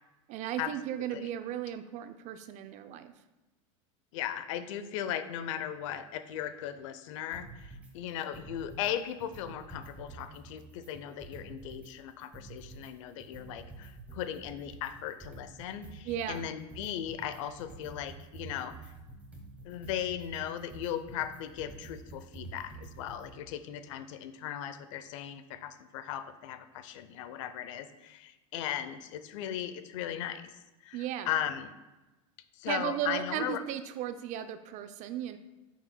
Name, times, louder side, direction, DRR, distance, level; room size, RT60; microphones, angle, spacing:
voice 1, 0.3-3.1 16.0-16.5 30.9-31.3 32.7-35.4, right 11 dB, 45° right, 10 dB, 0.5 m, -36 dB
voice 2, 4.1-18.9 19.6-30.6 30.8-31.7 32.5-33.6, left 10 dB, 70° left, 11 dB, 0.6 m, -37 dB
sound 1, 7.3-7.9 8.2-8.9 9.2-11.9 12.2-23.3, right 3 dB, 10° right, 1.7 m, -48 dB
8.8 x 6.2 x 2.2 m, 1.1 s
hypercardioid pair, 105°, 17 cm